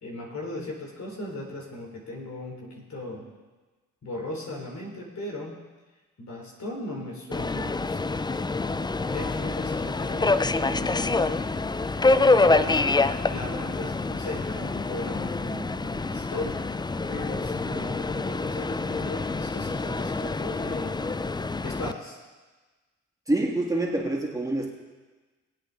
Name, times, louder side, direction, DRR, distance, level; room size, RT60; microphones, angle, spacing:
voice 1, 0.0-3.3 4.0-5.6 6.2-8.3 8.8-11.3 12.1-16.6 17.1-21.0 21.6-22.2, left 1 dB, 55° left, -1 dB, 3.5 m, -37 dB
Subway metro underground, 7.3-21.9, left 3 dB, 15° left, 0.4 m, -26 dB
voice 2, 23.3-24.7, right 2 dB, 10° right, -3 dB, 3.0 m, -26 dB
21.0 x 8.2 x 3.9 m, 1.3 s
supercardioid pair, 45°, 32 cm